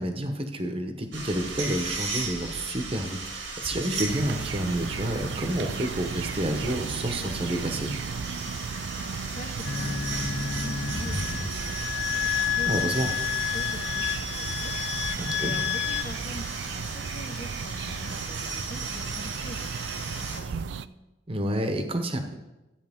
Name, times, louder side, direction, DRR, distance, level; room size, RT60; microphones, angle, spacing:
voice 1, 0.0-7.9 12.7-13.1 15.2-15.6 21.3-22.3, right 1 dB, 30° right, 5 dB, 1.0 m, -29 dB
sound 1, 1.1-20.4, right 3 dB, 80° right, 1.9 m, -36 dB
sound 2, 4.1-20.9, right 6 dB, 65° right, 0.3 m, -36 dB
voice 2, 9.0-13.2 13.5-20.8, left 1 dB, 45° left, 5 dB, 1.1 m, -43 dB
sound 3, 9.6-16.0, left 9 dB, 70° left, 1.1 m, -30 dB
13.0 x 8.7 x 3.6 m, 1.0 s
head